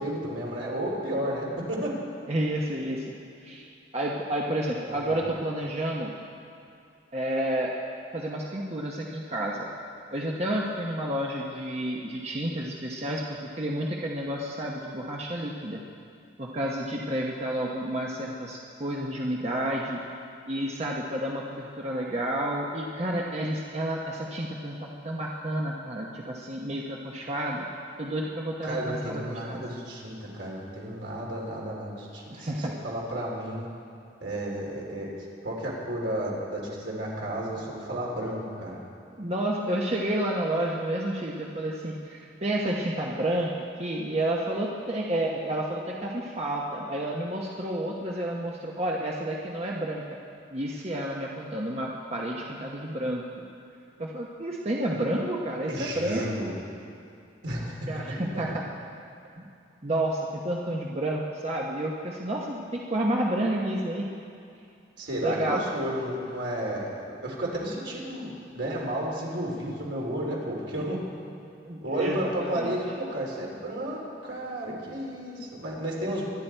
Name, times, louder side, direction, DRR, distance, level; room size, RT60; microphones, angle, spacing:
voice 1, 0.0-2.0 4.9-5.3 28.6-33.7 34.2-35.1 35.4-38.8 55.7-56.6 57.4-57.9 58.3-58.4 65.0-71.0 71.8-76.2, right 1 dB, 75° right, -3 dB, 3.5 m, -32 dB
voice 2, 2.3-3.1 3.4-3.7 3.9-6.1 7.1-7.8 8.1-9.7 10.1-15.8 16.4-20.0 20.5-27.7 28.0-29.2 29.5-29.6 32.3-32.7 39.2-43.5 43.8-50.0 50.5-53.2 54.0-56.3 57.9-58.6 59.4-59.5 59.8-64.1 65.2-65.7 71.6-72.8, right 1 dB, 35° right, -2 dB, 1.0 m, -30 dB
23.5 x 10.5 x 4.5 m, 2.5 s
head